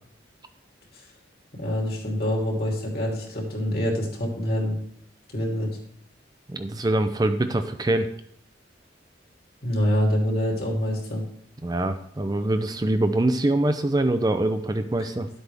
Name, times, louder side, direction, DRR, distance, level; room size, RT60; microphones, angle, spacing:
voice 1, 1.6-4.7 5.3-5.7 9.6-11.2, equal, 55° left, -2 dB, 3.0 m, -25 dB
voice 2, 6.5-8.1 11.6-15.3, right 1 dB, 20° right, 8 dB, 0.5 m, -24 dB
12.0 x 8.2 x 3.4 m, 0.69 s
head